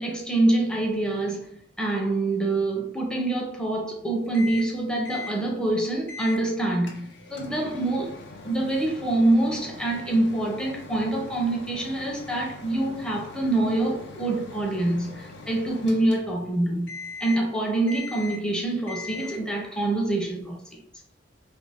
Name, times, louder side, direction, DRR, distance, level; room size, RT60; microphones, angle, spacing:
voice 1, 0.0-8.1 8.4-20.8, right 2 dB, 5° left, 0.5 m, -26 dB
Microwave oven, 4.3-4.7 5.0-5.4 6.1-6.4 6.9-16.5 16.9-17.5 17.9-18.5 18.9-19.5, left 3 dB, 75° left, 0.5 m, -41 dB
2.5 x 2.4 x 3.3 m
head